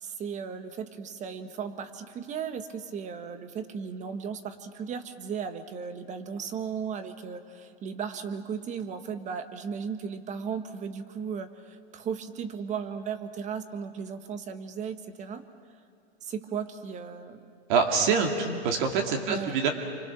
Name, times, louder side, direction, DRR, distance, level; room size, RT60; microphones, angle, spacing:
voice 1, 0.0-15.4 16.2-17.4 19.3-19.6, right 6 dB, 25° right, 9 dB, 1.4 m, -36 dB
voice 2, 17.7-19.7, right 5 dB, 50° right, 2 dB, 2.6 m, -25 dB
29.5 x 25.5 x 6.2 m, 2.4 s
hypercardioid pair, 130°, 32 cm